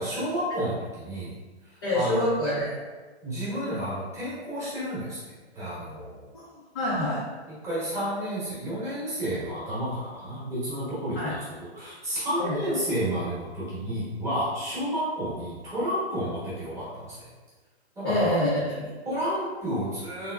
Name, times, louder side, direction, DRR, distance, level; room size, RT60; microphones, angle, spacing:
voice 1, 0.0-1.3 1.9-2.2 3.2-5.2 5.5-6.2 7.6-17.3 18.0-18.4 19.1-20.3, equal, 10° right, -10 dB, 0.9 m, -31 dB
voice 2, 1.8-2.7 6.3-6.4 6.7-7.2 11.2-11.3 12.4-12.6 18.0-19.0, left 1 dB, 20° left, -9 dB, 0.4 m, -26 dB
3.4 x 2.8 x 2.3 m, 1.3 s
hypercardioid pair, 155°, 34 cm